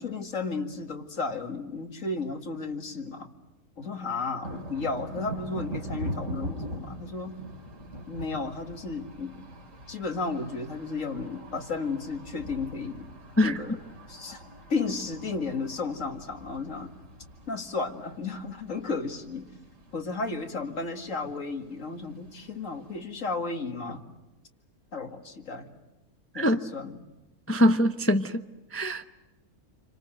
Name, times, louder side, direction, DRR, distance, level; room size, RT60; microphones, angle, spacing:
voice 1, 0.0-3.3 3.8-7.4 8.1-9.3 9.9-13.1 13.4-13.8 14.1-14.4 14.7-16.9 17.5-19.5 19.9-24.0 24.9-25.7 26.3-27.0, left 4 dB, 60° left, 5 dB, 2.4 m, -33 dB
sound 1, 4.4-23.0, right 1 dB, 55° right, 3.0 m, -42 dB
voice 2, 27.5-28.4 28.7-29.0, equal, 15° left, 8 dB, 0.6 m, -23 dB
29.0 x 25.0 x 7.8 m, 1.0 s
omnidirectional pair, 1.6 m